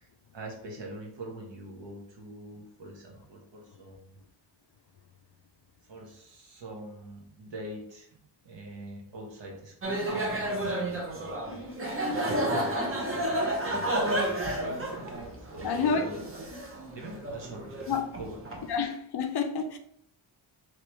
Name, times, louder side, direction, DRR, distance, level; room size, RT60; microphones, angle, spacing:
voice 1, 0.0-4.2 5.8-8.2 8.4-15.2 15.5-16.4 16.9-18.4, right 1 dB, 60° right, 1.1 m, -44 dB
sound 1, 9.8-18.6, right 1 dB, 25° right, 0.7 m, -31 dB
voice 2, 15.6-16.1 17.9-18.0 18.7-19.8, left 5 dB, 55° left, 0.5 m, -28 dB
3.2 x 3.0 x 2.9 m
wide cardioid pair, 110°, 49 cm